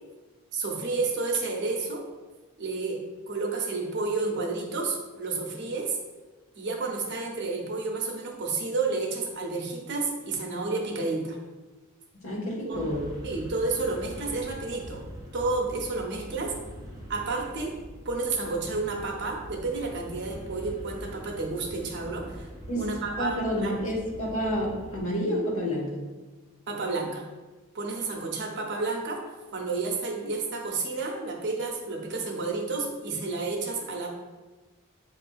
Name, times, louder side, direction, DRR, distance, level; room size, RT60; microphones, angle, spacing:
voice 1, 0.5-2.0 2.6-3.0 3.3-6.0 6.6-11.4 12.7-12.8 13.2-15.1 15.3-16.5 17.1-17.7 18.0-22.5 22.7-23.7 26.7-27.2 27.7-29.2 29.5-34.1, right 3 dB, 50° right, 0 dB, 0.7 m, -30 dB
voice 2, 12.2-13.1 22.7-22.8 23.2-26.0, equal, 65° left, -4 dB, 1.2 m, -29 dB
sound 1, 12.7-25.0, equal, 15° right, 0.5 m, -43 dB
7.2 x 2.5 x 2.3 m, 1.2 s
head